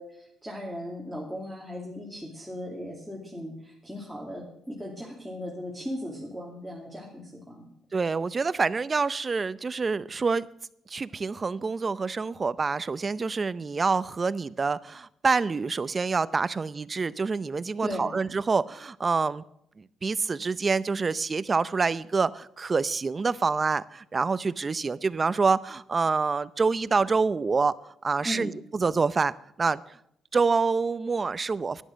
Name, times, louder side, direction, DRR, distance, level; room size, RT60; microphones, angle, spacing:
voice 1, 0.0-7.7 17.8-18.2 28.2-28.5, equal, ahead, -3 dB, 2.6 m, -37 dB
voice 2, 7.9-10.5 10.9-19.4 19.8-27.7 28.0-29.3 29.6-30.0 30.3-31.8, right 4 dB, 30° right, 17 dB, 0.6 m, -26 dB
11.5 x 10.0 x 7.5 m, 0.76 s
cardioid pair, 90°, 0 cm